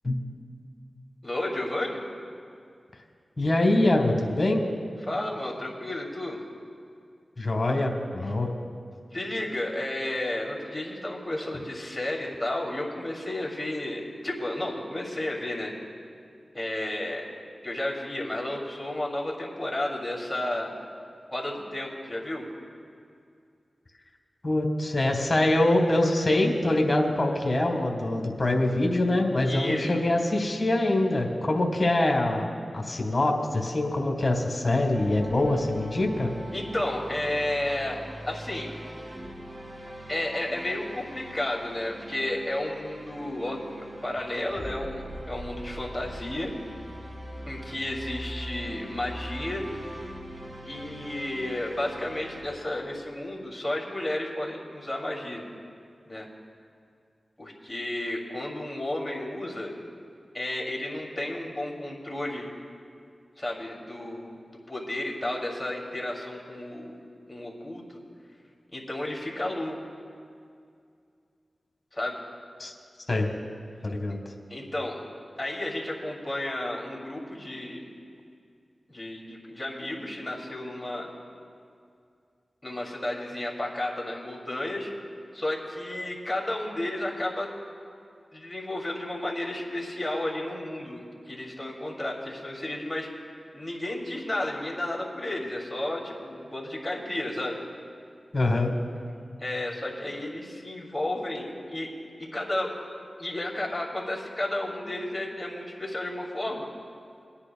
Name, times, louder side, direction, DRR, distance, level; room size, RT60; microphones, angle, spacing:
voice 1, 1.2-2.0 5.1-6.4 9.1-15.7 16.5-17.2 17.6-20.7 21.3-22.5 29.4-29.9 36.5-38.0 38.3-38.7 40.1-46.5 47.5-49.6 50.7-55.5 56.1-56.3 57.4-59.7 60.3-62.5 63.4-64.3 64.7-66.9 67.3-68.0 68.7-69.8 71.9-72.2 74.5-75.0 75.4-77.8 78.9-81.1 82.6-84.9 85.3-87.5 88.3-91.0 91.3-93.1 93.5-97.6 99.4-101.9 102.2-102.7 103.2-106.7, left 1 dB, 20° left, -2 dB, 2.7 m, -32 dB
voice 2, 3.4-4.6 7.4-8.5 24.4-36.3 72.6-72.7 73.1-73.3 73.8-74.2 98.3-98.7, left 1 dB, 45° left, 2 dB, 1.6 m, -24 dB
sound 1, 34.9-52.4, equal, 45° right, 2.2 m, -41 dB
23.0 x 9.8 x 2.3 m, 2.3 s
cardioid pair, 40°, 0 cm